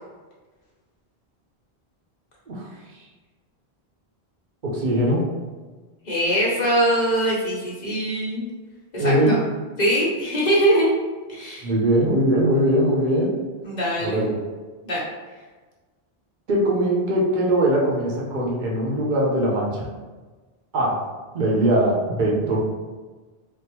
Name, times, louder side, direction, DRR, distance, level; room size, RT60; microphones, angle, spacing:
voice 1, 4.6-5.3 9.0-9.3 11.6-13.4 14.0-14.4 16.5-19.9 20.7-21.0 21.3-22.6, right 1 dB, 55° right, -3 dB, 0.8 m, -21 dB
voice 2, 6.0-8.4 8.9-9.4 9.8-10.9 11.3-11.7 13.6-14.2 14.8-15.1, right 1 dB, 45° left, -5 dB, 0.9 m, -22 dB
3.5 x 2.0 x 2.9 m, 1.3 s
omnidirectional pair, 1.1 m